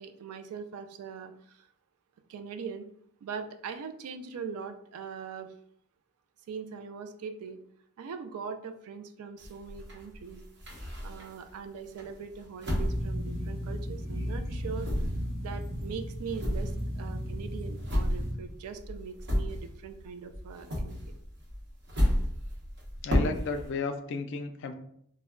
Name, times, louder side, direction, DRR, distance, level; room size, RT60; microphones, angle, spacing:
voice 1, 0.0-1.7 2.3-2.9 3.2-5.5 6.5-7.6 8.0-10.4 11.0-14.9 15.4-21.2, right 6 dB, 75° right, 8 dB, 0.3 m, -41 dB
sound 1, 9.4-11.5 12.0-14.1 14.3-20.0 20.3-23.7, equal, 50° right, 0.8 m, -32 dB
sound 2, 12.7-18.3, equal, 15° right, 0.6 m, -35 dB
voice 2, 23.0-24.7, left 4 dB, 55° left, 7 dB, 0.3 m, -33 dB
2.2 x 2.1 x 3.6 m, 0.68 s
head